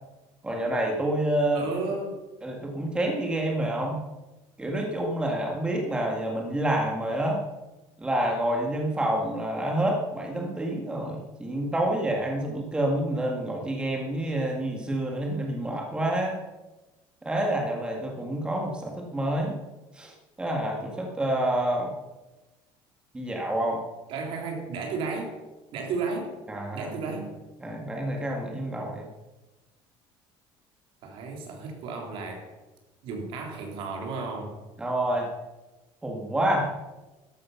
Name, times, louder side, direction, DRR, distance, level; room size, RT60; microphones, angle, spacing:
voice 1, 0.4-1.7 2.4-4.0 4.6-7.4 8.0-16.4 17.2-19.6 19.9-21.9 23.1-23.8 26.5-27.0 27.6-29.1 34.8-35.3 36.0-36.7, right 1 dB, 10° right, 0 dB, 1.8 m, -28 dB
voice 2, 1.5-2.2 24.1-25.4 25.7-26.4 26.7-27.4 31.0-32.5 33.0-34.6, right 4 dB, 60° right, 2 dB, 3.7 m, -33 dB
13.5 x 11.5 x 5.7 m, 1.1 s
cardioid pair, 150°, 10 cm